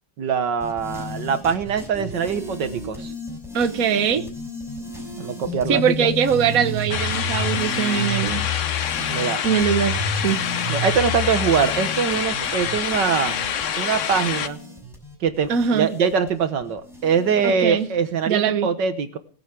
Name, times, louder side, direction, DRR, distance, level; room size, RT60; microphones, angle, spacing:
voice 1, 0.2-3.1 5.2-6.1 9.0-9.4 10.7-13.4 13.8-14.6 15.2-19.2, right 6 dB, 75° right, 11 dB, 1.9 m, -23 dB
sound 1, 0.6-17.8, left 2 dB, ahead, 5.9 m, -32 dB
voice 2, 3.5-4.2 5.7-8.5 9.4-10.0 10.2-10.4 15.5-15.9 17.4-17.9 18.3-18.7, right 7 dB, 55° right, 10 dB, 1.6 m, -21 dB
sound 2, 6.9-14.5, left 8 dB, 50° left, 1.0 m, -26 dB
20.5 x 8.3 x 7.5 m, 0.42 s
omnidirectional pair, 1.9 m